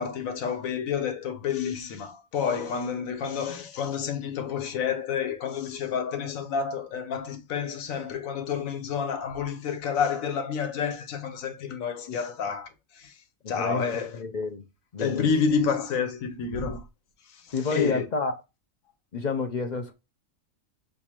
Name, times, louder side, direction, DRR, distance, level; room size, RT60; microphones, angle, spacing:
voice 1, 0.0-13.2 13.5-14.2 15.0-16.8 17.3-18.0, left 6 dB, 85° left, 1.2 m, -29 dB
voice 2, 13.4-14.6 14.9-15.3 17.5-18.3 19.1-19.9, left 4 dB, 45° left, 0.6 m, -29 dB
6.8 x 2.5 x 2.9 m
omnidirectional pair, 1.4 m